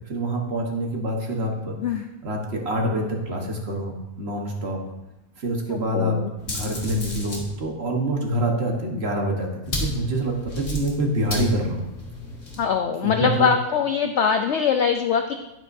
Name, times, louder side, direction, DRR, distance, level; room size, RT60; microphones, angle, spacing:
voice 1, 0.1-1.7 2.2-4.8 5.4-6.2 6.5-9.5 9.8-11.9 13.0-13.5, right 1 dB, 45° right, 1 dB, 1.4 m, -26 dB
voice 2, 1.8-2.1 5.7-6.3 12.6-15.3, left 7 dB, 70° left, 6 dB, 0.6 m, -22 dB
sound 1, 6.4-7.5 9.7-12.6, left 1 dB, 45° left, 1.8 m, -33 dB
9.7 x 9.3 x 2.6 m, 0.96 s
omnidirectional pair, 1.6 m